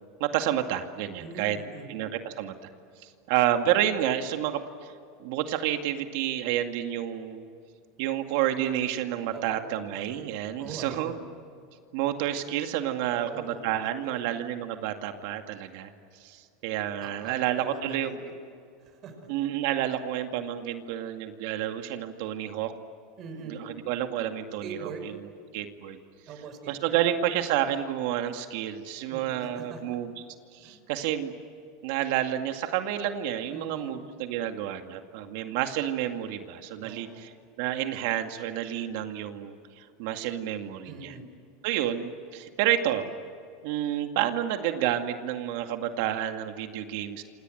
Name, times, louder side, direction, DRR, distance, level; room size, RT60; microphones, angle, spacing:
voice 1, 0.2-1.6 1.9-2.7 3.0-4.6 5.2-7.5 8.0-11.1 11.9-15.9 16.2-18.2 19.3-22.7 23.5-25.2 25.5-26.0 26.7-30.1 30.5-31.3 31.8-37.3 37.6-41.1 41.6-43.2 43.6-47.2, right 11 dB, 65° right, 6 dB, 2.1 m, -29 dB
voice 2, 1.2-1.9 9.3-9.7 10.6-11.2 13.1-14.2 17.0-18.3 18.8-19.3 23.2-23.6 24.6-25.1 26.3-27.0 29.1-30.0 30.6-30.8 33.5-34.0 36.8-37.3 40.8-41.3, right 4 dB, 35° right, 6 dB, 5.8 m, -42 dB
28.0 x 27.0 x 7.9 m, 2.4 s
supercardioid pair, 150°, 0 cm